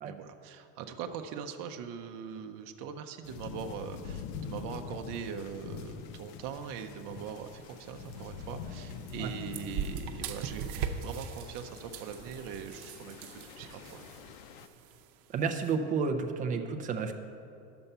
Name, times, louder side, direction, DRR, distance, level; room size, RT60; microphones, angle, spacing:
voice 1, 0.0-10.7 11.0-14.2, right 7 dB, 50° right, 5 dB, 0.7 m, -41 dB
sound 1, 3.2-14.7, left 6 dB, 85° left, 0.8 m, -45 dB
sound 2, 7.1-15.7, right 7 dB, 85° right, 0.8 m, -42 dB
voice 2, 15.3-17.1, right 5 dB, 20° right, 5 dB, 0.4 m, -31 dB
10.0 x 7.0 x 5.5 m, 2.7 s
cardioid pair, 160°, 42 cm